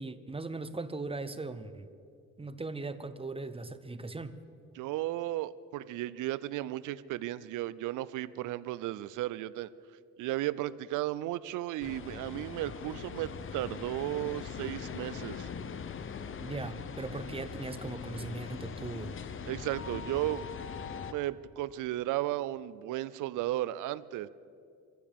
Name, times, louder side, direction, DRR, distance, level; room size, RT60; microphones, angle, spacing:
voice 1, 0.0-1.9 2.4-4.3 16.4-19.1, right 3 dB, 20° right, 11 dB, 0.8 m, -39 dB
voice 2, 4.7-9.7 10.2-15.5 19.5-20.5 21.1-24.3, right 15 dB, 85° right, 17 dB, 0.5 m, -34 dB
sound 1, 11.8-21.1, left 6 dB, 45° left, 0.8 m, -41 dB
24.5 x 15.0 x 3.6 m, 2.4 s
cardioid pair, 90°, 30 cm